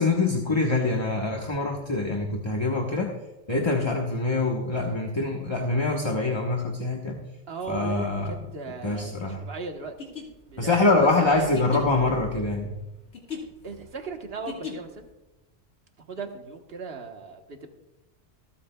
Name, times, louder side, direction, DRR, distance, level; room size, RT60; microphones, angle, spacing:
voice 1, 0.0-3.1 3.5-7.2 7.7-8.4 8.8-9.4 10.6-12.8, left 3 dB, 25° left, 0 dB, 1.1 m, -24 dB
voice 2, 7.5-9.9 10.5-11.5 13.6-15.1 16.0-17.7, right 4 dB, 60° right, 4 dB, 1.4 m, -37 dB
sound 1, 9.8-15.1, left 5 dB, 90° left, 2.0 m, -40 dB
26.0 x 8.7 x 2.3 m, 0.99 s
omnidirectional pair, 1.1 m